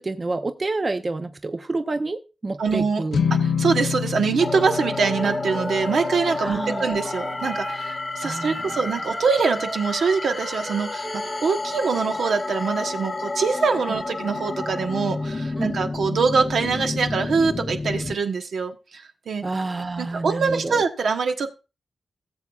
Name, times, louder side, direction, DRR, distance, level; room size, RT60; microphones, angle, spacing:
voice 1, 0.0-3.2 6.4-6.8 8.2-8.8 15.6-15.8 19.4-20.8, right 3 dB, 35° right, 8 dB, 0.6 m, -28 dB
voice 2, 2.6-3.0 3.4-19.4 20.0-21.5, right 5 dB, 75° right, 5 dB, 1.1 m, -24 dB
sound 1, 3.1-9.5, left 6 dB, 75° left, 0.7 m, -30 dB
sound 2, 4.4-18.2, left 3 dB, 35° left, 0.6 m, -30 dB
Wind instrument woodwind instrument, 5.0-8.0 8.3-11.5, right 2 dB, 50° right, 1.1 m, -38 dB
17.5 x 7.1 x 2.3 m, 0.30 s
cardioid pair, 85°, 0 cm